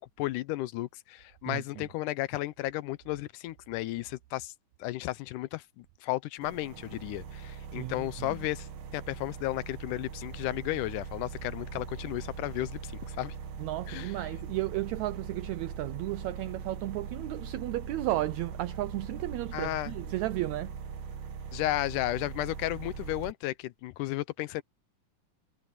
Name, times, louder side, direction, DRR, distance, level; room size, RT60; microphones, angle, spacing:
voice 1, 0.2-4.5 4.8-8.7 8.9-13.4 13.9-14.1 19.5-19.9 21.5-24.6, left 17 dB, 80° left, 2.1 m, -34 dB
voice 2, 1.5-1.9 7.7-8.4 13.6-20.8, right 17 dB, 90° right, 1.6 m, -34 dB
sound 1, 6.4-23.3, right 6 dB, 60° right, 2.7 m, -41 dB
omnidirectional pair, 3.8 m